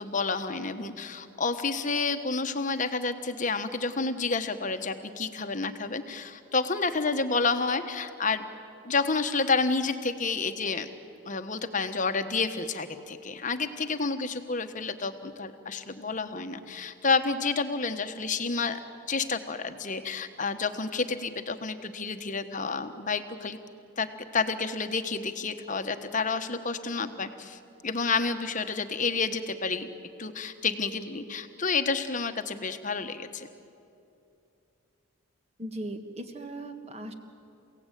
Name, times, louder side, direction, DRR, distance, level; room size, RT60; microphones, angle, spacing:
voice 1, 0.0-8.4 8.8-10.9 11.3-18.8 19.1-23.6 24.0-24.1 24.3-29.9 30.2-33.5, left 4 dB, 35° left, 9 dB, 1.2 m, -30 dB
voice 2, 35.6-37.1, right 1 dB, 30° right, 6 dB, 1.7 m, -38 dB
29.5 x 17.0 x 9.2 m, 2.7 s
head